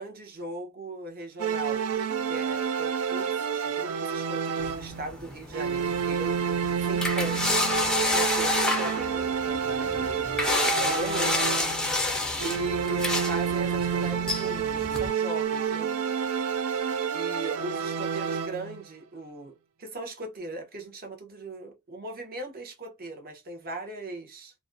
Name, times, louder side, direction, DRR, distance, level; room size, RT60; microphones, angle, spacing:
voice 1, 0.0-1.8 2.3-7.7 8.1-11.6 12.4-15.9 17.1-24.5, right 2 dB, 45° right, 0.7 m, -39 dB
sound 1, 1.4-5.1 5.5-12.0 12.4-18.8, right 7 dB, 70° right, 0.3 m, -29 dB
sound 2, 4.6-15.1, left 2 dB, 5° left, 0.4 m, -29 dB
2.4 x 2.1 x 2.4 m
head